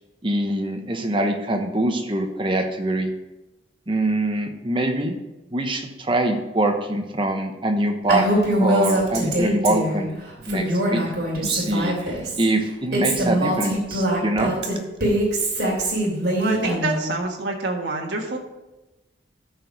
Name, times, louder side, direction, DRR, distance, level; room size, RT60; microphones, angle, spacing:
voice 1, 0.2-3.1 3.9-5.2 5.5-8.3 8.6-11.0 11.4-14.5, right 1 dB, 30° right, 5 dB, 1.0 m, -24 dB
Female speech woman speaking, 8.1-10.0 10.4-12.4 12.9-17.0, right 1 dB, 60° right, 3.3 m, -23 dB
voice 2, 16.4-18.4, right 2 dB, 75° right, 0 dB, 1.5 m, -27 dB
13.5 x 4.8 x 5.3 m, 1.0 s
head